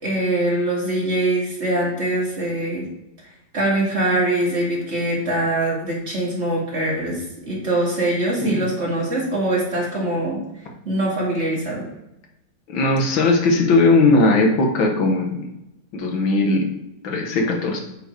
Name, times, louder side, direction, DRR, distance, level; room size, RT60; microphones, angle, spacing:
voice 1, 0.0-2.8 3.5-10.4 10.8-11.8, right 1 dB, 35° right, -4 dB, 2.4 m, -23 dB
voice 2, 12.7-15.5 15.9-16.7 17.0-17.8, left 2 dB, 85° left, 1 dB, 2.1 m, -18 dB
8.8 x 4.4 x 4.6 m, 0.89 s
omnidirectional pair, 2.1 m